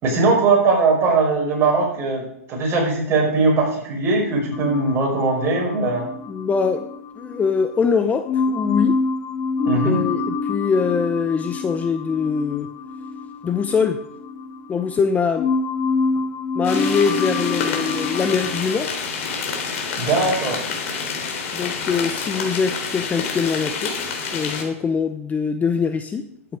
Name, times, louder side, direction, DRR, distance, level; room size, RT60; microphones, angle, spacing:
voice 1, 0.0-6.1 9.7-10.0 20.0-20.6, right 3 dB, 30° right, -1 dB, 5.4 m, -20 dB
sound 1, 4.5-7.8 8.3-15.1 15.4-18.6, left 4 dB, 35° left, 1.5 m, -26 dB
voice 2, 6.3-6.9 7.2-8.9 9.8-12.7 13.4-14.0 14.7-15.5 16.5-18.9 21.5-23.9 24.3-26.2, left 5 dB, 20° left, 8 dB, 0.8 m, -23 dB
sound 2, 16.6-24.6, left 5 dB, 60° left, 3.3 m, -28 dB
13.0 x 7.9 x 4.9 m, 0.73 s
hypercardioid pair, 115°, 8 cm